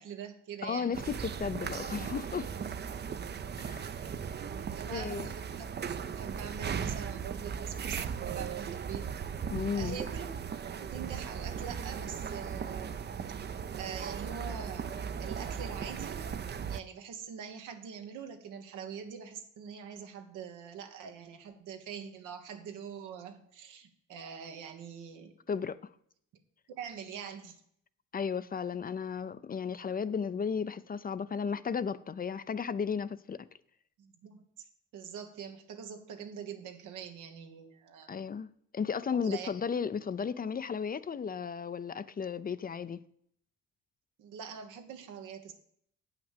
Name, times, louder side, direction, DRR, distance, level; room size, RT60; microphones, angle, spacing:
voice 1, 0.0-1.0 3.9-4.2 4.6-9.1 9.7-10.3 10.6-13.1 13.7-25.3 26.7-27.6 34.0-34.4 34.9-38.1 39.1-39.5 44.2-45.5, right 7 dB, 90° right, 1.5 m, -44 dB
voice 2, 0.6-2.5 3.6-3.9 4.9-5.3 9.5-10.0 25.5-25.9 28.1-33.5 38.1-43.0, left 6 dB, 30° left, 0.5 m, -34 dB
sound 1, 0.9-16.8, right 7 dB, 35° right, 0.6 m, -37 dB
8.5 x 5.9 x 7.3 m
cardioid pair, 90°, 30 cm